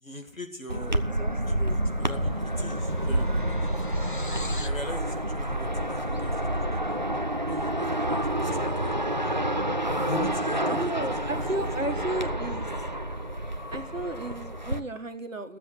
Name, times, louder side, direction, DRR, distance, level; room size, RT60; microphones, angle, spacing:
voice 1, 0.0-1.0 1.5-3.8 4.5-7.0 7.5-9.4 10.1-11.1 11.3-12.6, left 1 dB, 85° left, 4 dB, 2.3 m, -41 dB
sound 1, 0.7-14.8, right 1 dB, 35° right, 0.5 m, -28 dB
voice 2, 0.7-1.8 10.7-12.9 13.7-15.6, right 2 dB, 75° right, 8 dB, 1.5 m, -34 dB
sound 2, 1.7-1.9 2.1-4.9, left 2 dB, 40° left, 0.6 m, -43 dB
sound 3, 4.1-10.0, left 2 dB, 20° left, 2.1 m, -49 dB
13.0 x 7.6 x 8.2 m, 0.67 s
figure-of-eight pair, 155°, 39 cm